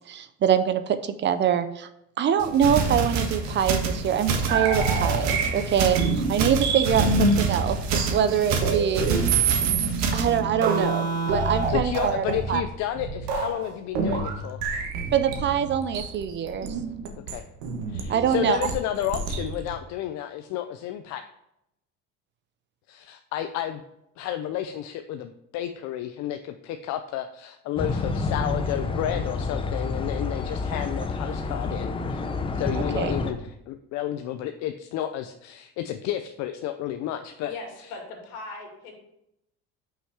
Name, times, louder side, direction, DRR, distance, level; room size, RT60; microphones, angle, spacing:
voice 1, 0.1-1.9 2.2-9.1 9.6-9.9 10.1-12.6 15.1-16.7 18.1-18.6 32.8-33.1, right 8 dB, 35° right, 11 dB, 0.5 m, -24 dB
sound 1, 2.4-10.4, right 4 dB, 60° right, 1.4 m, -27 dB
sound 2, 4.5-19.8, right 4 dB, 90° right, 1.3 m, -27 dB
voice 2, 11.7-14.6 17.3-17.4 17.9-21.2 22.9-23.8 24.2-32.2 32.6-37.5, left 11 dB, 60° left, 7 dB, 0.6 m, -31 dB
sound 3, 27.8-33.3, left 3 dB, 15° left, 0.5 m, -29 dB
voice 3, 37.5-39.0, left 3 dB, 75° left, 1 dB, 2.4 m, -39 dB
5.8 x 5.7 x 4.7 m, 0.81 s
cardioid pair, 130°, 32 cm